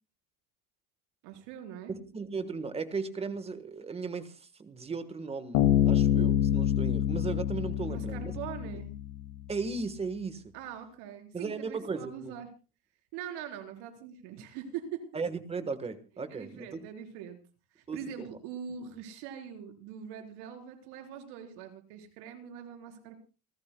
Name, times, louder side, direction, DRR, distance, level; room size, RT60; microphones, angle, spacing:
voice 1, 1.2-1.9 7.9-8.9 10.5-12.5 13.1-15.0 16.3-17.4 17.8-23.2, right 8 dB, 60° right, 5 dB, 4.3 m, -42 dB
voice 2, 1.9-8.3 9.5-10.5 11.3-12.3 15.1-16.9 17.9-18.3, right 4 dB, 15° right, 11 dB, 1.3 m, -36 dB
Bass guitar, 5.5-9.0, left 10 dB, 90° left, 2.4 m, -26 dB
29.5 x 13.0 x 2.3 m, 0.34 s
cardioid pair, 170°, 44 cm